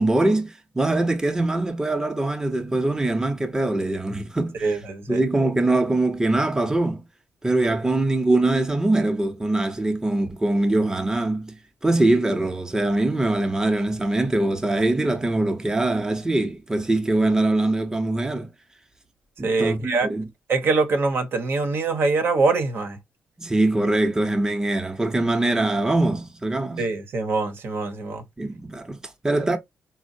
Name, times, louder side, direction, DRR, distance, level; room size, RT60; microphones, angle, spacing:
voice 1, 0.0-4.8 5.1-7.0 7.4-11.6 11.8-18.5 19.4-20.3 23.4-26.8 28.4-29.6, right 2 dB, 15° right, 0.7 m, -23 dB
voice 2, 4.6-5.2 19.4-20.1 20.5-23.0 26.8-28.2, right 3 dB, 60° right, 0.9 m, -23 dB
4.2 x 2.1 x 2.6 m
cardioid pair, 80°, 4 cm